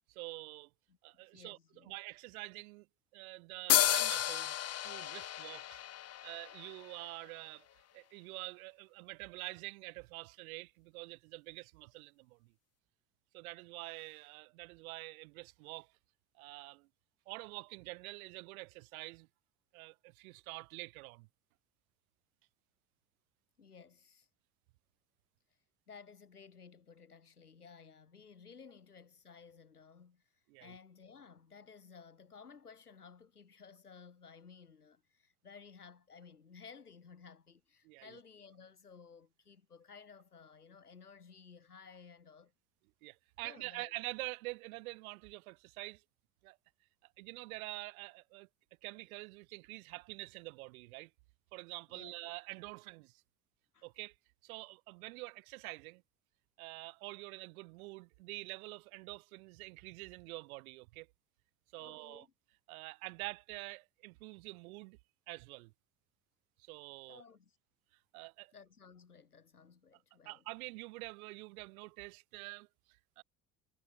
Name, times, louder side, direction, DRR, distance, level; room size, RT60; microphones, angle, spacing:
voice 1, 0.1-0.7 1.0-1.6 1.8-2.9 3.1-4.6 4.8-5.8 6.2-7.7 7.9-12.5 13.3-15.9 16.4-16.9 17.3-19.3 19.7-21.3 30.5-30.7 37.8-38.2 43.0-46.0 46.4-46.6 47.2-48.5 48.8-51.1 51.5-53.2 53.8-54.1 54.4-56.0 56.6-61.1 61.7-62.3 62.7-65.0 65.3-65.7 66.6-67.2 68.1-68.5 70.2-72.7 73.2-73.3, right 24 dB, 70° right, 3.3 m, -47 dB
voice 2, 0.9-2.0 23.6-24.3 25.9-42.5 43.4-43.9 51.9-52.1 53.7-53.9 61.8-62.3 67.1-67.6 68.5-70.4, left 6 dB, 90° left, 5.0 m, -56 dB
sound 1, 3.7-7.2, left 12 dB, 35° left, 0.9 m, -33 dB
figure-of-eight pair, 60°, 44 cm